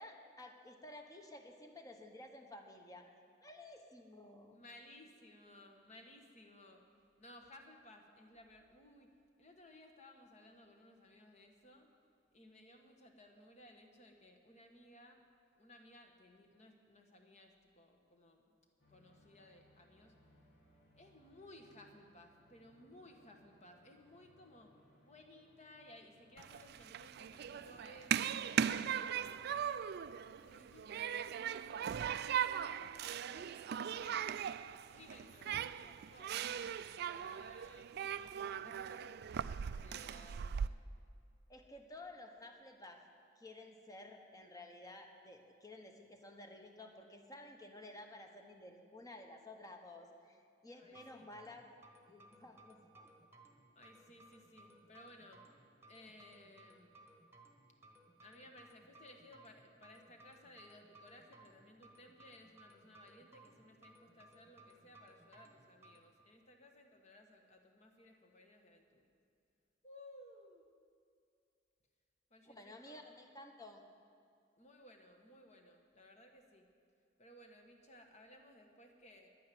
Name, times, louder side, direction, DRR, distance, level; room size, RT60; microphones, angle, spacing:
voice 1, 0.0-3.0 3.4-4.6 41.5-43.0 43.4-51.7 52.1-53.1 72.5-73.8, left 1 dB, 20° left, 4 dB, 1.2 m, -53 dB
voice 2, 4.5-6.8 7.2-11.9 12.3-15.2 15.6-18.6 18.9-20.1 21.0-24.7 25.0-29.7 30.4-34.6 34.9-40.8 50.7-51.3 53.7-55.4 55.9-56.9 58.2-69.0 69.8-70.6 72.3-73.0 74.6-76.7 77.2-79.3, left 1 dB, 40° left, 3 dB, 1.4 m, -60 dB
sound 1, 18.8-29.3, left 1 dB, 65° left, 2.7 m, -69 dB
Human group actions, 26.4-40.7, right 8 dB, 55° right, 0.3 m, -39 dB
sound 2, 50.8-66.0, right 2 dB, 15° right, 1.3 m, -62 dB
11.0 x 9.6 x 9.3 m, 2.4 s
head